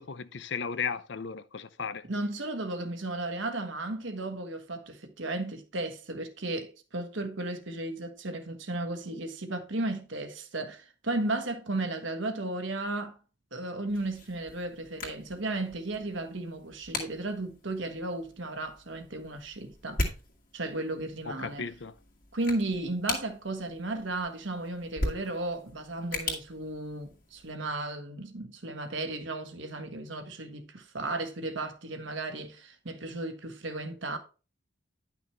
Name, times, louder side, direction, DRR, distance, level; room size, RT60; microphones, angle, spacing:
voice 1, 0.0-2.1 21.3-21.9, left 6 dB, 60° left, 0.6 m, -35 dB
voice 2, 2.0-13.2 13.5-20.0 20.5-21.7 22.3-34.2, right 2 dB, 65° right, 1.4 m, -34 dB
sound 1, 13.9-27.6, left 2 dB, 45° left, 2.2 m, -40 dB
10.5 x 6.1 x 3.2 m
head